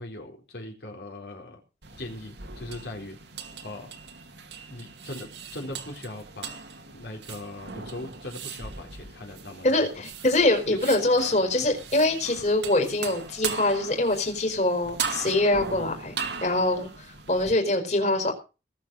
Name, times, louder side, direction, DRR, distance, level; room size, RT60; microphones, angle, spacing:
voice 1, 0.0-1.6 2.0-3.2 3.6-3.9 4.7-6.6 6.9-9.9 10.7-11.0 16.8-16.9, left 1 dB, 65° left, 1 dB, 4.1 m, -39 dB
sound 1, 1.8-17.5, right 5 dB, 75° right, 2.5 m, -38 dB
voice 2, 9.6-16.1 16.4-18.3, left 2 dB, 40° left, 3 dB, 4.7 m, -24 dB
19.5 x 7.5 x 6.3 m, 0.32 s
head